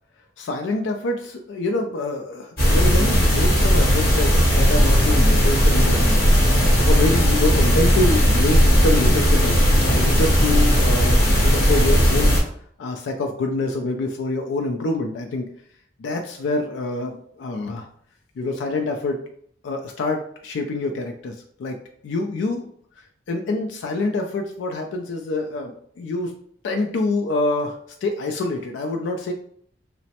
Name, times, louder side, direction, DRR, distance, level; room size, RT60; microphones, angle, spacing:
voice 1, 0.4-12.4 12.8-15.5 16.0-17.9 18.4-19.2 19.6-21.8 22.0-22.7 23.0-26.3 26.6-29.3, left 2 dB, 85° left, 3 dB, 0.3 m, -26 dB
sound 1, 2.6-12.4, equal, 55° left, 0.9 m, -17 dB
3.0 x 2.0 x 2.8 m, 0.63 s
head